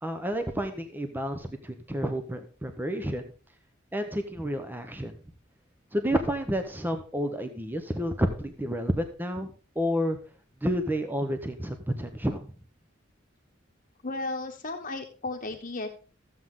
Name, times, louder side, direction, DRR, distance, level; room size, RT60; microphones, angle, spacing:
voice 1, 0.0-3.2 3.9-5.1 5.9-10.2 10.6-12.4, equal, 10° right, 7 dB, 0.8 m, -30 dB
voice 2, 14.0-15.9, left 2 dB, 40° left, 2 dB, 1.2 m, -34 dB
14.5 x 7.7 x 3.7 m, 0.37 s
head